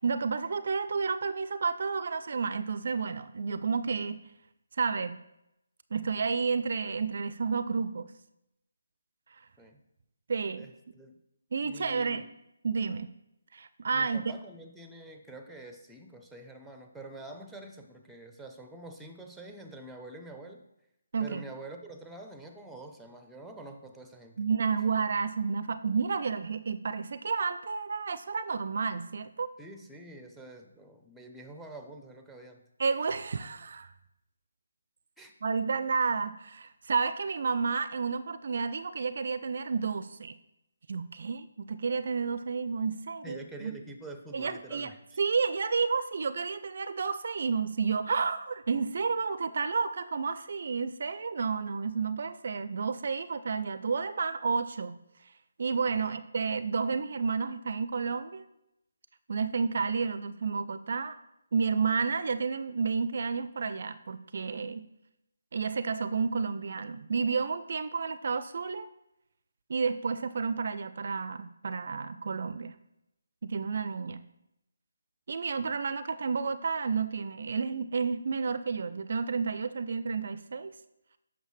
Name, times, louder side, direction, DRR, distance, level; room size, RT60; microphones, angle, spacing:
voice 1, 0.0-4.2 4.8-5.2 5.9-8.1 10.3-10.7 11.5-12.2 12.6-13.1 13.5-14.4 21.1-21.5 24.4-29.5 32.8-33.9 35.4-40.3 40.9-43.8 44.3-44.9 45.2-55.0 55.6-58.5 59.3-61.2 61.5-64.9 65.5-68.9 69.7-72.8 73.4-74.2 75.3-80.7, right 5 dB, 55° right, 13 dB, 0.3 m, -31 dB
voice 2, 10.6-11.2 11.6-12.3 13.9-20.6 21.2-24.4 29.6-32.6 35.2-35.3 43.2-45.2 55.9-56.2 75.6-75.8, right 2 dB, ahead, 5 dB, 0.6 m, -46 dB
8.0 x 5.9 x 3.2 m, 0.85 s
figure-of-eight pair, 150°, 0 cm